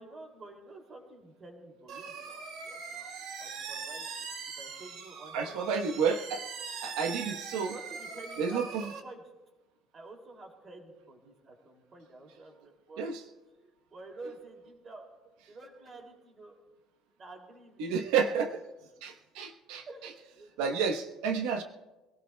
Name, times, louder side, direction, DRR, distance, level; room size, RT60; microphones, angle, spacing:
voice 1, 0.0-3.1 3.4-4.3 4.6-5.8 7.0-7.1 7.7-9.2 9.9-13.1 13.5-15.1 15.5-16.6 17.2-18.3 19.9-20.5, right 2 dB, 25° right, 2 dB, 2.6 m, -49 dB
sound 1, 1.9-9.0, right 5 dB, 55° right, 2.0 m, -41 dB
voice 2, 5.3-6.4 6.8-7.7 8.4-8.8 13.0-13.2 17.8-18.5 19.0-19.9 20.6-21.6, right 6 dB, 80° right, 5 dB, 1.0 m, -30 dB
25.0 x 17.5 x 2.2 m, 1.1 s
cardioid pair, 175°, 0 cm